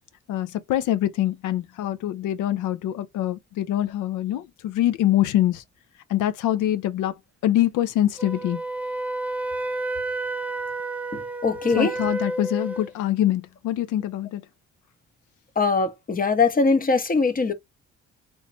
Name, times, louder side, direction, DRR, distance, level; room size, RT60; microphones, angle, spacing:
voice 1, 0.3-5.6 6.1-7.2 7.4-8.6 11.8-14.4, left 12 dB, 85° left, 0.6 m, -24 dB
Wind instrument woodwind instrument, 8.2-12.9, right 2 dB, 5° right, 0.5 m, -30 dB
voice 2, 11.1-11.9 15.6-17.5, left 4 dB, 30° left, 0.7 m, -22 dB
3.1 x 2.1 x 3.9 m
cardioid pair, 90°, 30 cm